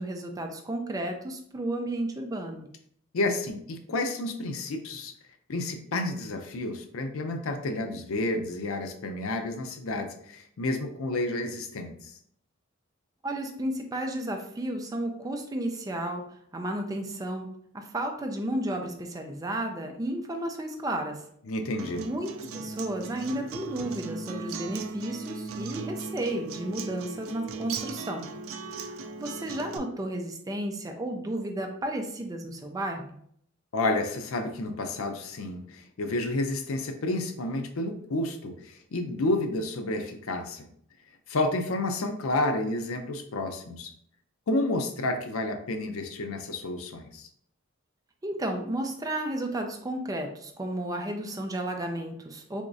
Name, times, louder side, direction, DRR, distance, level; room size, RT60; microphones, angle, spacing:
voice 1, 0.0-2.7 13.2-16.2 16.5-17.5 17.7-21.2 22.0-28.3 28.8-33.2 48.2-52.6, right 1 dB, 20° right, 3 dB, 0.4 m, -33 dB
voice 2, 3.1-5.1 5.5-12.1 21.5-22.0 33.7-40.7 41.3-43.9 44.5-47.3, left 2 dB, 90° left, 6 dB, 0.5 m, -30 dB
Acoustic guitar, 21.8-29.8, right 4 dB, 85° right, 0.4 m, -38 dB
3.5 x 3.0 x 2.6 m, 0.66 s
head